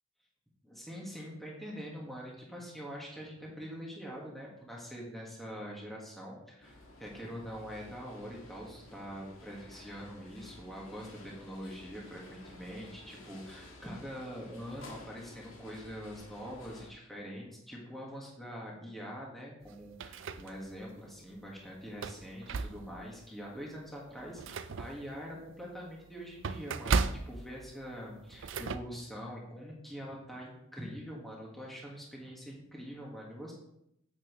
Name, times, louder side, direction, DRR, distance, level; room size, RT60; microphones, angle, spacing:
voice 1, 0.6-33.5, equal, ahead, -3 dB, 1.6 m, -44 dB
sound 1, 6.6-16.9, left 2 dB, 80° left, 1.8 m, -53 dB
sound 2, 19.6-20.9 21.3-21.4 21.9-23.1 23.6-23.7 24.1-28.8, right 4 dB, 65° right, 0.5 m, -36 dB
8.7 x 8.6 x 3.1 m, 0.79 s
head